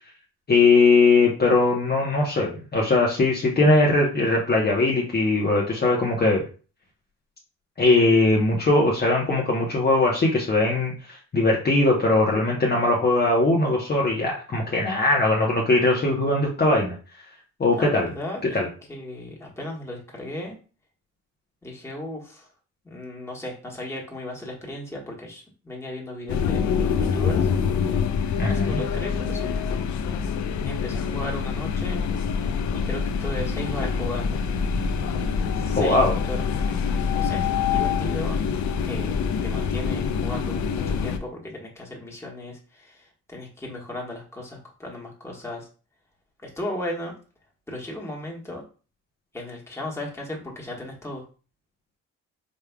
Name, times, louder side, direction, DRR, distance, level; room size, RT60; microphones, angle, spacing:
voice 1, 0.5-6.5 7.8-17.0 17.6-18.1 18.4-18.7 28.4-28.8 35.7-36.2, left 2 dB, 35° left, -2 dB, 1.0 m, -20 dB
voice 2, 17.7-18.6 18.9-20.6 21.6-22.5 22.8-26.6 27.0-27.5 28.4-29.5 30.6-32.0 32.7-34.4 35.6-36.0 36.3-38.4 38.8-45.7 46.4-47.2 47.7-48.6 49.3-51.2, left 1 dB, 10° left, -2 dB, 1.5 m, -36 dB
sound 1, 26.3-41.2, left 6 dB, 70° left, 0.6 m, -25 dB
5.2 x 3.4 x 2.3 m, 0.37 s
cardioid pair, 90°, 30 cm